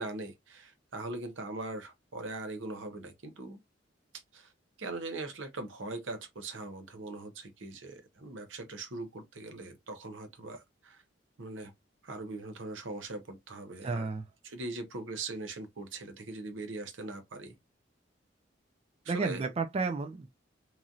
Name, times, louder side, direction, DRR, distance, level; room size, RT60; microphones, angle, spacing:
voice 1, 0.0-3.6 4.3-4.5 4.8-11.0 11.4-11.7 12.0-14.1 14.4-17.6 19.0-19.4, right 2 dB, 85° right, 0.8 m, -41 dB
voice 2, 13.8-14.2 19.1-20.3, right 4 dB, 30° right, 0.4 m, -32 dB
3.0 x 2.6 x 2.3 m
head